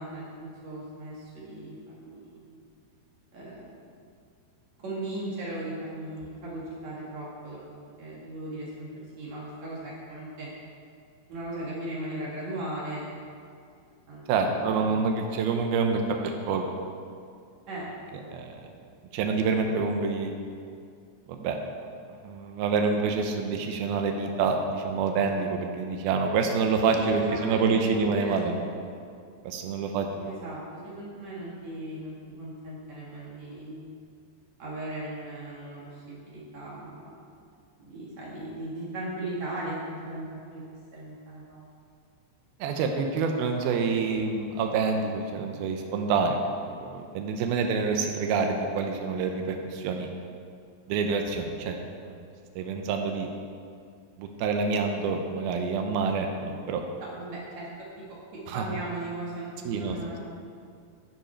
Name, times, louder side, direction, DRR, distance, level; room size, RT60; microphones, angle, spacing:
voice 1, 0.0-2.6 3.3-3.7 4.8-7.6 8.0-8.9 9.2-10.5 11.3-13.0 14.1-14.8 17.7-17.8 18.1-18.3 27.0-28.4 30.2-33.9 34.6-37.2 37.8-40.6 40.9-41.7 57.0-57.7 58.0-58.1 58.3-60.2, right 1 dB, 50° right, -6 dB, 2.4 m, -38 dB
voice 2, 14.3-16.7 18.3-18.6 19.1-20.3 21.3-21.6 22.2-28.7 29.4-30.3 42.6-46.4 46.7-50.1 50.9-51.8 52.1-52.2 52.6-53.3 54.2-56.8 58.5-58.8 59.6-60.1, right 4 dB, 85° right, 3 dB, 2.1 m, -27 dB
12.0 x 10.5 x 4.5 m, 2.3 s
omnidirectional pair, 5.4 m